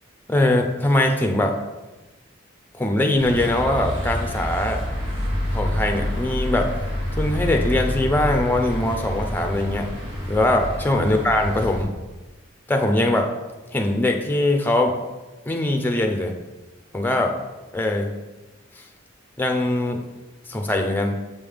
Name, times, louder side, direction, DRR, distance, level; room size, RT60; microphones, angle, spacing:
voice 1, 0.3-1.6 2.7-4.8 5.5-6.7 7.2-9.9 10.3-11.9 12.7-13.3 13.7-15.0 15.5-16.3 16.9-17.4 17.7-18.2 19.4-20.0 20.5-21.2, left 1 dB, 10° left, 3 dB, 0.6 m, -21 dB
sound 1, 3.2-11.8, left 1 dB, 85° right, 2.0 m, -27 dB
7.2 x 5.4 x 3.4 m, 1.1 s
head